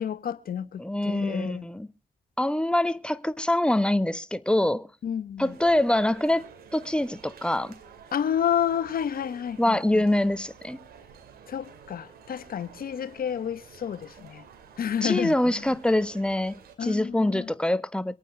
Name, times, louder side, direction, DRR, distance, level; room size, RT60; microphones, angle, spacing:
voice 1, 0.0-1.7 5.0-5.5 8.1-10.0 11.5-14.4 14.8-15.6 16.8-17.5, left 9 dB, 75° left, 1.1 m, -30 dB
voice 2, 0.8-1.9 2.4-4.9 5.4-6.4 6.7-7.7 9.6-10.8 15.0-18.2, left 1 dB, 5° left, 1.2 m, -25 dB
sound 1, 5.4-16.8, right 7 dB, 85° right, 2.3 m, -50 dB
24.0 x 9.1 x 3.3 m
supercardioid pair, 50°, 15 cm